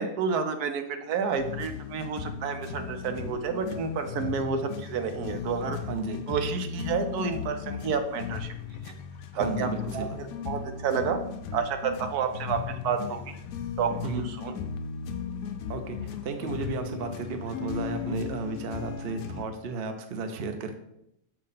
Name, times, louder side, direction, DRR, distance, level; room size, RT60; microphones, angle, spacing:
voice 1, 0.0-5.8 6.3-8.5 8.8-8.9 9.4-11.2 11.5-13.4 13.8-14.5, right 6 dB, 80° right, 7 dB, 1.2 m, -30 dB
sound 1, 1.4-19.4, left 7 dB, 75° left, 1.0 m, -36 dB
voice 2, 5.8-6.2 9.3-10.2 14.0-14.3 15.7-20.8, right 4 dB, 55° right, 6 dB, 0.7 m, -33 dB
6.9 x 2.8 x 5.5 m, 0.80 s
omnidirectional pair, 1.6 m